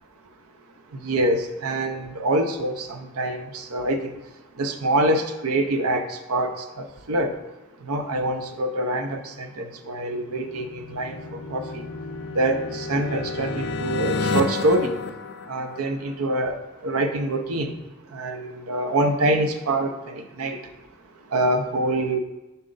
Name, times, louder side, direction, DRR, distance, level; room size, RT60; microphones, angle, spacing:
voice 1, 1.0-4.1 4.6-7.4 7.9-11.8 12.3-14.9 15.5-16.6 16.8-17.7 18.1-20.6 21.3-22.2, right 1 dB, 80° right, 7 dB, 0.5 m, -25 dB
sound 1, 10.3-16.1, left 3 dB, 50° left, 0.4 m, -30 dB
6.3 x 4.1 x 3.9 m, 1.0 s
head